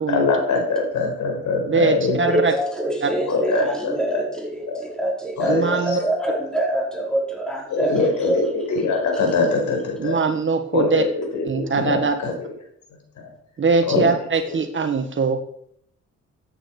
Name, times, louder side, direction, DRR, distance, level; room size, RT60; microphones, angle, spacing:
voice 1, 0.1-2.4 3.3-4.2 4.7-4.8 5.4-6.0 6.3-6.4 7.7-10.2 10.7-12.5 13.2-13.3 13.8-14.2 14.4-14.6, left 3 dB, 70° left, 1 dB, 5.0 m, -23 dB
voice 2, 1.7-2.5 3.0-3.1 5.5-6.0 10.0-11.0 11.4-12.2 13.6-15.4, right 4 dB, 40° right, 7 dB, 1.5 m, -21 dB
voice 3, 2.2-8.5, right 1 dB, ahead, -2 dB, 4.8 m, -25 dB
13.5 x 8.9 x 4.8 m, 0.68 s
cardioid pair, 90°, 30 cm